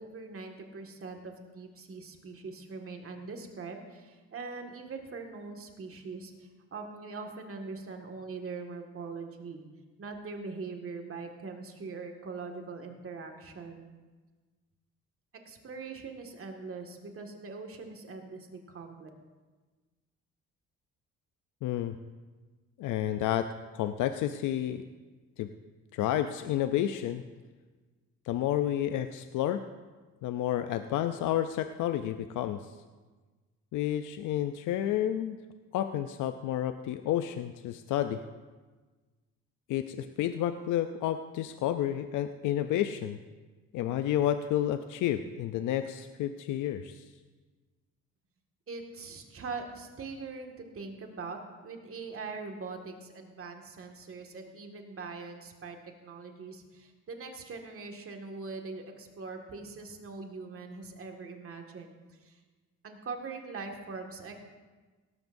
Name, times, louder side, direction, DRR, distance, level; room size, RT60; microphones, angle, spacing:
voice 1, 0.0-9.6 10.0-14.0 15.5-19.1 48.7-62.4 62.8-64.3, right 4 dB, 45° right, 3 dB, 1.9 m, -42 dB
voice 2, 21.6-21.9 22.8-23.5 23.7-24.8 25.4-25.5 25.9-27.2 28.3-29.6 30.2-32.7 33.7-35.4 35.7-38.2 39.7-43.2 43.7-47.1, left 11 dB, 85° left, 9 dB, 0.6 m, -30 dB
17.5 x 14.0 x 2.7 m, 1.3 s
cardioid pair, 90°, 30 cm